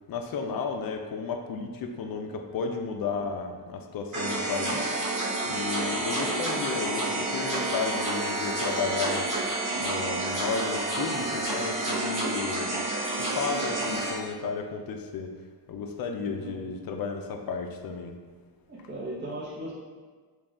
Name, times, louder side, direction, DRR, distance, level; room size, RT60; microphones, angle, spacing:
voice 1, 0.1-4.9 5.5-9.3 9.8-12.8 13.2-15.3 15.7-18.2, left 5 dB, 60° left, 4 dB, 0.5 m, -33 dB
sound 1, 4.1-14.1, right 2 dB, 50° right, 1.1 m, -29 dB
voice 2, 16.2-16.6 18.7-19.7, right 1 dB, 25° right, -8 dB, 0.7 m, -37 dB
3.9 x 2.3 x 3.5 m, 1.5 s
wide cardioid pair, 120°, 41 cm